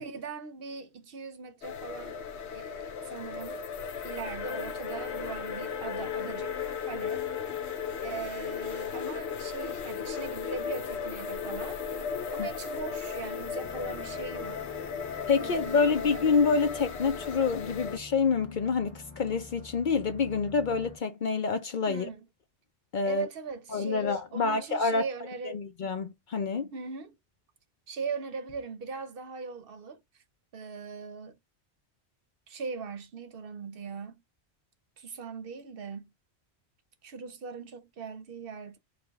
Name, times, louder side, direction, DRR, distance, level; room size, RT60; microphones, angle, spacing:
voice 1, 0.0-2.2 2.5-3.6 4.0-6.6 6.8-7.3 8.0-11.8 12.3-14.6 15.4-16.2 21.9-22.3 23.0-25.7 26.7-27.2 27.9-30.0 30.5-31.4 32.5-34.2 35.0-36.1 37.0-38.8, right 5 dB, 60° right, 0.8 m, -40 dB
sound 1, 1.6-18.0, left 7 dB, 80° left, 1.0 m, -36 dB
sound 2, 13.6-21.0, left 3 dB, 30° left, 1.4 m, -49 dB
voice 2, 15.3-22.1 22.9-23.3 23.7-25.0 25.5-26.7, left 5 dB, 55° left, 0.6 m, -27 dB
4.8 x 2.3 x 3.4 m
omnidirectional pair, 1.1 m